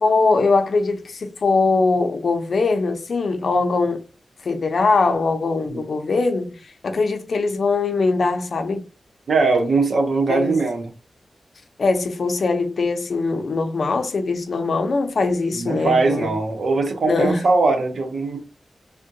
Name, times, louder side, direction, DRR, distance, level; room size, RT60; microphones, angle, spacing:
voice 1, 0.0-4.0 4.4-6.6 6.8-8.8 10.3-10.5 11.8-16.3 17.0-17.4, left 3 dB, 60° left, 0.5 m, -21 dB
voice 2, 9.3-10.9 15.5-18.4, right 3 dB, 80° right, 0.8 m, -20 dB
3.5 x 2.2 x 2.6 m
wide cardioid pair, 140°, 0 cm